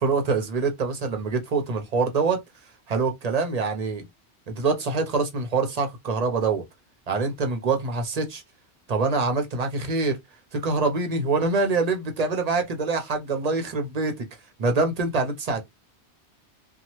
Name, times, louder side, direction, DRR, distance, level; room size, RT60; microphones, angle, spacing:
voice 1, 0.0-2.4 2.9-4.0 4.5-6.6 7.1-8.4 8.9-10.2 10.5-14.3 14.6-15.7, right 4 dB, 45° right, 0.6 m, -25 dB
2.8 x 2.2 x 2.9 m
omnidirectional pair, 1.2 m